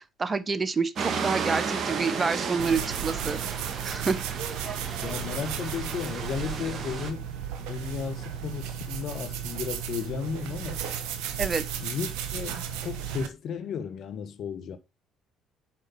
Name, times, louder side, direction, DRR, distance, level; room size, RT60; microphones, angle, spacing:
voice 1, 0.2-3.4 3.8-4.2 4.7-4.8 11.4-11.6, right 4 dB, 30° right, 1.0 m, -28 dB
sound 1, 1.0-7.1, right 6 dB, 50° right, 1.9 m, -33 dB
sound 2, 2.6-13.3, right 9 dB, 70° right, 1.2 m, -35 dB
voice 2, 5.0-7.3 7.6-10.8 11.8-14.8, left 6 dB, 55° left, 1.4 m, -34 dB
6.2 x 5.1 x 5.7 m
hypercardioid pair, 55°, 0 cm